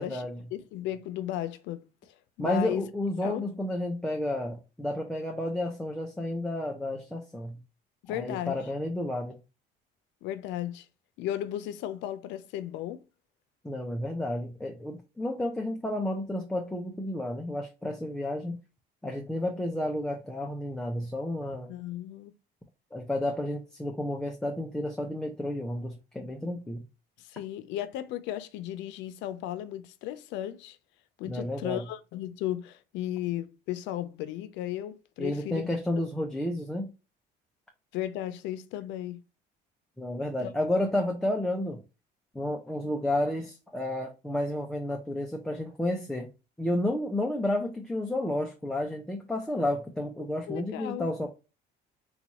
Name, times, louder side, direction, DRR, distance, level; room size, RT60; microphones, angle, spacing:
voice 1, 0.0-0.4 2.4-7.6 8.1-9.4 13.6-18.6 19.0-21.7 22.9-26.9 31.2-31.8 35.2-36.9 40.0-41.8 42.3-46.3 46.6-51.3, left 1 dB, 5° left, 0.4 m, -31 dB
voice 2, 0.5-2.8 3.2-3.5 8.0-8.6 10.2-10.9 11.2-13.0 21.7-22.3 27.2-30.8 31.2-35.7 37.9-39.2 40.4-40.5 50.5-51.1, left 12 dB, 85° left, 0.5 m, -35 dB
4.0 x 2.3 x 2.8 m
cardioid pair, 165°, 18 cm